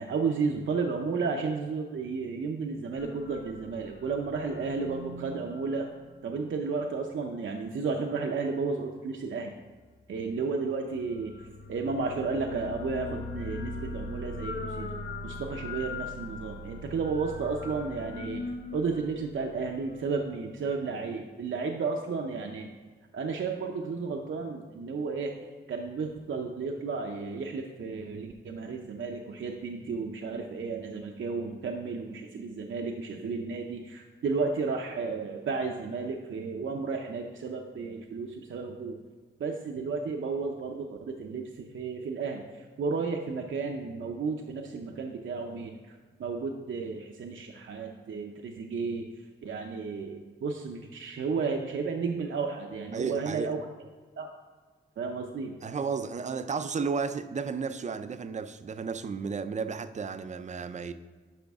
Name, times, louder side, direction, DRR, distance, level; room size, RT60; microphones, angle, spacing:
voice 1, 0.0-5.9 6.2-9.5 10.1-22.7 23.1-25.3 25.7-39.0 39.4-53.6 54.2-54.3 55.0-55.5, right 4 dB, 75° right, 0.6 m, -33 dB
sound 1, 3.0-6.6 10.8-20.1, left 2 dB, 55° left, 0.6 m, -40 dB
voice 2, 52.9-53.6 55.6-60.9, right 5 dB, 35° right, 0.4 m, -33 dB
10.0 x 5.8 x 3.5 m
wide cardioid pair, 135°, 20 cm